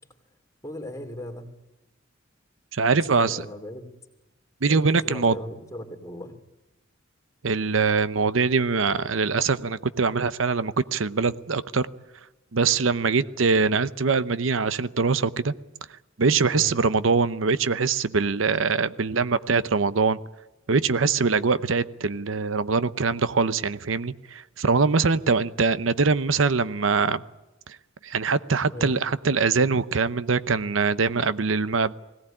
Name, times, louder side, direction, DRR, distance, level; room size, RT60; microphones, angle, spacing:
voice 1, 0.6-1.5 3.1-3.8 4.7-6.3 16.5-16.8 28.7-28.9, left 1 dB, 15° left, 4 dB, 2.8 m, -37 dB
voice 2, 2.7-3.4 4.6-5.4 7.4-11.9 12.5-15.5 16.2-20.2 20.7-27.2 28.0-31.9, right 4 dB, 85° right, 15 dB, 0.8 m, -23 dB
21.5 x 17.5 x 10.0 m, 1.0 s
head